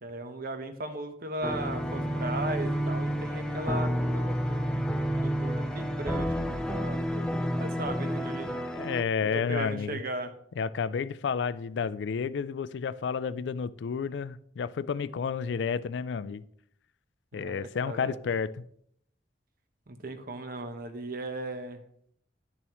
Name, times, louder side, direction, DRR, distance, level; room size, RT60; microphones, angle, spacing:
voice 1, 0.0-4.8 5.2-7.0 7.6-8.5 9.2-10.3 17.3-18.2 19.9-21.8, right 2 dB, 55° right, 8 dB, 1.0 m, -37 dB
sound 1, 1.4-9.0, equal, 5° left, 0.6 m, -30 dB
voice 2, 8.5-10.0 10.6-16.4 17.3-18.6, left 6 dB, 75° left, 16 dB, 0.4 m, -31 dB
10.5 x 7.0 x 3.0 m, 0.68 s
head